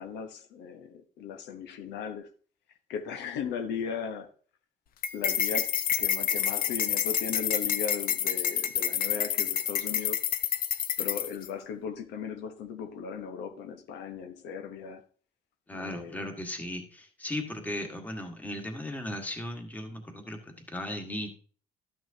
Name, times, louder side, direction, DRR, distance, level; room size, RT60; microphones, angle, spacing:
voice 1, 0.0-2.3 2.9-4.3 5.1-5.7 6.0-10.2 11.0-15.0 15.7-16.3, left 6 dB, 85° left, 6 dB, 1.0 m, -37 dB
sound 1, 5.0-11.5, left 9 dB, 60° left, 0.7 m, -28 dB
voice 2, 15.7-21.3, left 1 dB, 10° left, 3 dB, 1.7 m, -37 dB
12.5 x 6.2 x 2.8 m, 0.41 s
cardioid pair, 110°, 17 cm